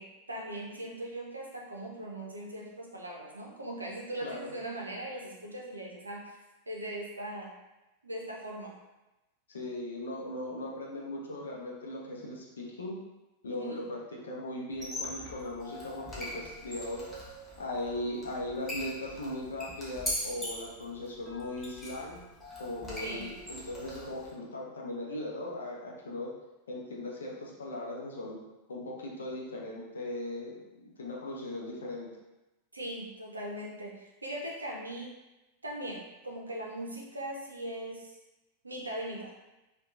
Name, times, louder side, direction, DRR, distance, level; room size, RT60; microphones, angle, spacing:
voice 1, 0.0-6.4 6.7-7.5 8.0-8.7 13.5-13.8 23.0-23.3 32.7-35.1 35.6-38.1 38.6-39.3, right 1 dB, 80° right, -2 dB, 0.5 m, -40 dB
voice 2, 4.2-4.5 9.5-13.0 13.4-17.1 17.6-22.2 22.6-26.3 26.7-28.4 28.7-32.1, left 1 dB, 70° left, -3 dB, 0.6 m, -38 dB
Squeak, 14.7-24.3, left 1 dB, 10° left, 0.7 m, -41 dB
2.8 x 2.2 x 2.3 m, 1.0 s
figure-of-eight pair, 90°, 0 cm